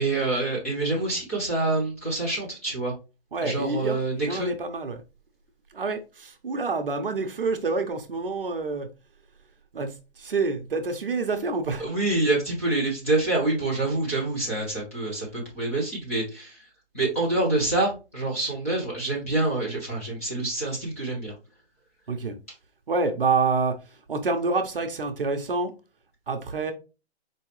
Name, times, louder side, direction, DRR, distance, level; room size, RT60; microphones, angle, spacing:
voice 1, 0.0-2.9 3.4-4.5 11.8-16.7 16.9-21.3, right 2 dB, 15° left, 1.0 m, -26 dB
voice 2, 3.3-5.0 5.7-8.9 9.7-11.9 22.1-22.3 22.9-25.7 26.3-26.7, right 4 dB, 55° right, 0.8 m, -27 dB
4.7 x 3.1 x 3.0 m
hypercardioid pair, 180°, 34 cm